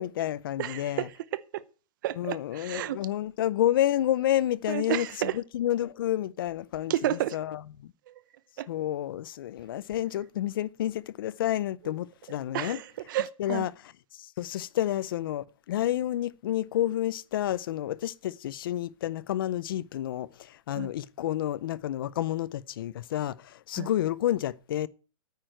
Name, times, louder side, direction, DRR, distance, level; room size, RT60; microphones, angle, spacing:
voice 1, 0.0-1.1 2.2-5.1 5.3-6.9 7.3-7.9 8.7-12.8 13.4-13.7 14.1-24.9, left 12 dB, 40° left, 0.5 m, -30 dB
voice 2, 0.6-1.6 2.0-3.0 4.7-5.4 6.9-7.4 8.1-8.2 8.6-8.7 11.8-11.9 12.5-13.7 20.8-20.9 23.7-23.9, right 13 dB, 35° right, 0.8 m, -31 dB
9.4 x 8.9 x 7.8 m
hypercardioid pair, 170°, 18 cm